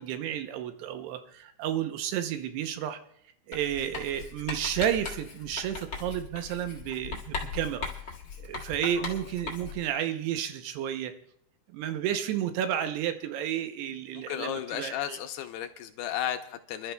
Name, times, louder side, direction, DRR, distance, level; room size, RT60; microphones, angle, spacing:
voice 1, 0.0-3.0 3.5-7.9 8.4-11.1 11.7-15.2, right 10 dB, 80° right, 8 dB, 2.7 m, -31 dB
Writing, 3.5-9.9, left 5 dB, 55° left, 1.3 m, -39 dB
voice 2, 14.2-16.9, left 11 dB, 80° left, 6 dB, 2.5 m, -34 dB
28.0 x 12.0 x 2.2 m, 0.72 s
omnidirectional pair, 5.0 m